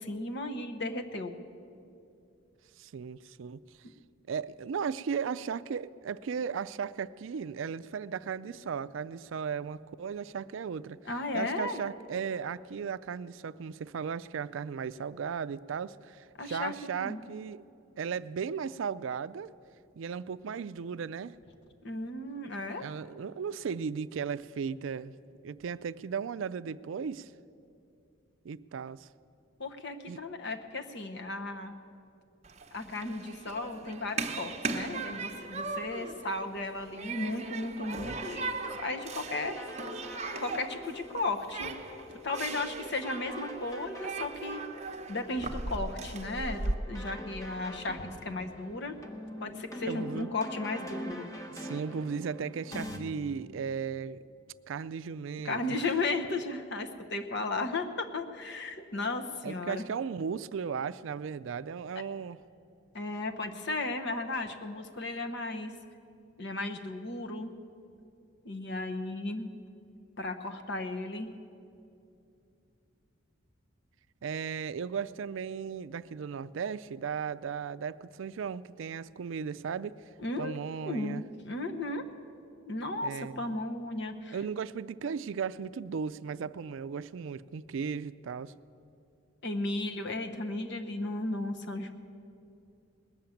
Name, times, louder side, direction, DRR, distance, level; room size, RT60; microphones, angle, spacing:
voice 1, 0.0-1.4 11.1-11.8 16.4-16.7 17.0-17.2 21.8-22.8 29.6-31.7 32.7-39.6 40.3-41.7 42.2-44.6 45.1-49.0 49.4-51.3 55.4-59.8 62.9-65.7 66.4-67.5 68.4-69.5 70.2-71.3 80.2-80.6 80.8-82.0 82.7-84.4 89.4-91.9, left 2 dB, 55° left, 6 dB, 1.0 m, -35 dB
voice 2, 2.8-3.6 4.3-11.0 11.3-17.6 18.0-19.5 20.0-21.4 22.8-25.1 25.4-27.3 28.4-29.1 30.1-30.2 49.9-50.3 51.5-54.2 54.7-55.9 59.4-62.4 74.2-80.0 80.4-81.2 83.0-83.6 84.3-88.5, right 6 dB, 70° right, 15 dB, 0.4 m, -36 dB
Human group actions, 32.4-46.7, right 3 dB, 35° right, 0.8 m, -38 dB
sound 1, 38.0-53.0, equal, 15° left, 1.0 m, -44 dB
19.5 x 7.2 x 9.0 m, 2.6 s
head